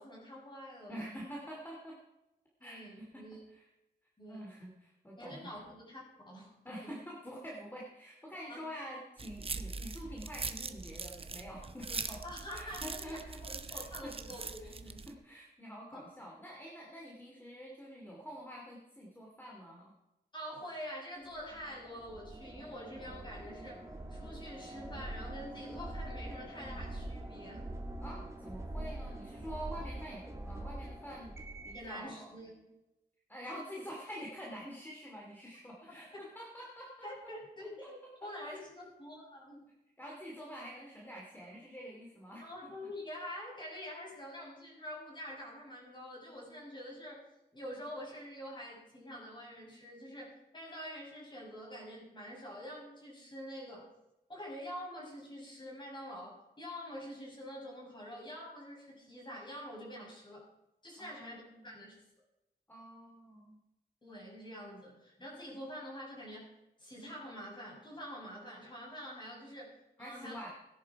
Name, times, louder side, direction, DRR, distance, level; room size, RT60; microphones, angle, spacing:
voice 1, 0.0-1.1 2.6-3.4 4.2-4.5 5.2-6.5 6.8-6.9 8.5-8.6 12.2-15.1 15.9-16.0 20.3-23.8 24.1-27.6 31.7-32.6 37.0-39.6 42.4-47.2 47.5-53.9 54.3-60.4 60.8-62.0 64.0-66.5 66.8-70.4, equal, 25° left, -3 dB, 6.2 m, -46 dB
voice 2, 0.9-2.0 2.6-3.7 4.2-5.5 6.6-12.2 12.5-13.4 13.7-14.1 14.6-19.9 28.0-31.3 31.6-32.3 33.3-37.1 37.8-37.9 38.2-38.6 40.0-42.9 61.0-61.8 62.7-63.6 70.0-70.5, equal, 10° left, -2 dB, 2.6 m, -47 dB
sound 1, 9.2-15.1, right 4 dB, 35° right, 0.8 m, -42 dB
sound 2, 21.3-31.9, right 1 dB, 15° right, 2.0 m, -44 dB
17.0 x 11.0 x 4.7 m, 0.91 s
wide cardioid pair, 135°, 17 cm